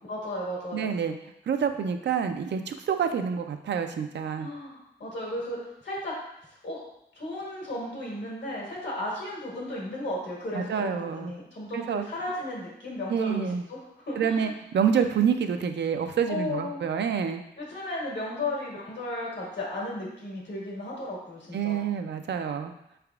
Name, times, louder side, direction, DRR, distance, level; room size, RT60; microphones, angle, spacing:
voice 1, 0.0-0.9 4.4-6.2 6.6-6.8 7.1-14.5 16.3-16.8 17.6-21.8, left 1 dB, 80° left, -4 dB, 1.5 m, -35 dB
voice 2, 0.7-1.1 1.5-4.5 10.5-11.3 11.7-12.1 13.1-13.6 14.2-17.4 21.5-22.7, right 7 dB, 75° right, 7 dB, 0.4 m, -27 dB
4.8 x 3.4 x 2.3 m, 0.81 s
cardioid pair, 60°, 18 cm